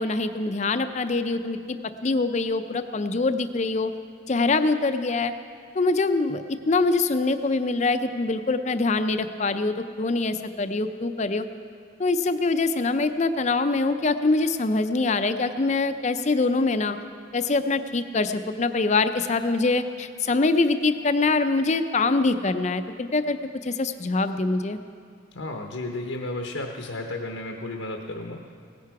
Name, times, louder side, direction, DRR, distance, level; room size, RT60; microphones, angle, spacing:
voice 1, 0.0-1.8 2.0-3.9 4.3-5.3 5.7-11.4 12.0-17.0 17.3-23.4 23.6-24.8, left 3 dB, 35° left, 10 dB, 0.5 m, -24 dB
voice 2, 25.3-28.4, left 2 dB, 80° left, 2 dB, 0.9 m, -33 dB
17.0 x 10.5 x 4.7 m, 2.2 s
head